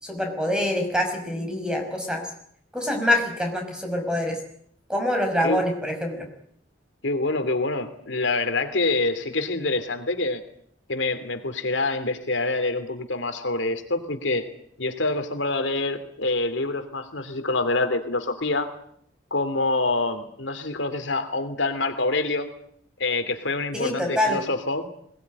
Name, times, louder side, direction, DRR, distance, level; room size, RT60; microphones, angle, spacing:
voice 1, 0.0-2.3 2.7-4.4 4.9-6.3 23.7-24.4, left 1 dB, 5° right, 3 dB, 5.8 m, -25 dB
voice 2, 7.0-10.4 10.9-14.5 14.8-18.7 19.3-22.5 23.0-24.9, left 2 dB, 90° left, 7 dB, 2.8 m, -26 dB
21.5 x 19.5 x 9.7 m, 0.67 s
head